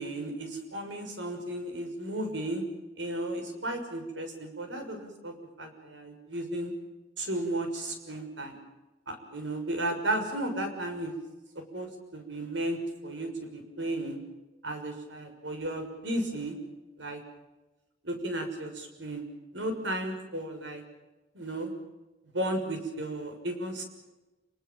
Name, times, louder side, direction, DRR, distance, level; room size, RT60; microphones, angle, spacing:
voice 1, 0.0-2.6 3.0-6.7 7.2-8.6 9.1-11.1 11.7-14.2 14.6-16.6 17.0-17.2 18.0-19.2 19.5-20.8 21.3-21.7 22.3-23.8, right 1 dB, 85° right, 5 dB, 6.5 m, -34 dB
29.5 x 20.5 x 7.4 m, 1.1 s
head